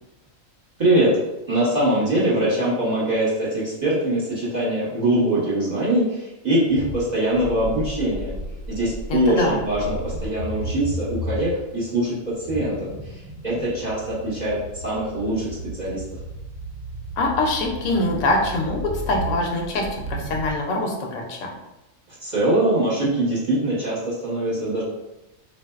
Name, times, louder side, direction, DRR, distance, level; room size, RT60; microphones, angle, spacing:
voice 1, 0.8-1.1 1.5-8.3 8.7-13.2 13.4-15.5 15.8-16.0 22.2-24.8, right 1 dB, 35° right, -8 dB, 1.0 m, -22 dB
sound 1, 6.7-20.5, equal, 65° right, 0.8 m, -34 dB
voice 2, 9.1-9.6 17.2-21.5, left 2 dB, 80° left, 0 dB, 1.0 m, -24 dB
3.4 x 2.5 x 2.3 m, 0.95 s
omnidirectional pair, 1.4 m